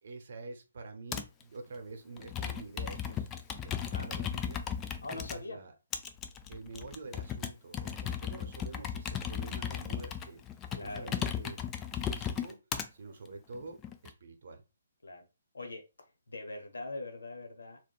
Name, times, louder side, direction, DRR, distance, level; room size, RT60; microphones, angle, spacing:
voice 1, 0.0-4.6 5.1-5.7 6.5-10.4 10.8-11.6 12.1-12.6 12.9-13.8 14.0-14.6, right 3 dB, 55° right, 4 dB, 0.7 m, -47 dB
Computer keyboard, 1.1-1.4 2.2-5.4 5.9-12.9 13.5-14.1, left 8 dB, 15° left, 0.3 m, -36 dB
voice 2, 5.0-5.6 10.7-11.1 15.0-15.3 15.5-15.8 16.3-17.8, left 2 dB, 75° left, 4 dB, 0.8 m, -42 dB
3.5 x 2.2 x 2.3 m, 0.29 s
figure-of-eight pair, 135°, 0 cm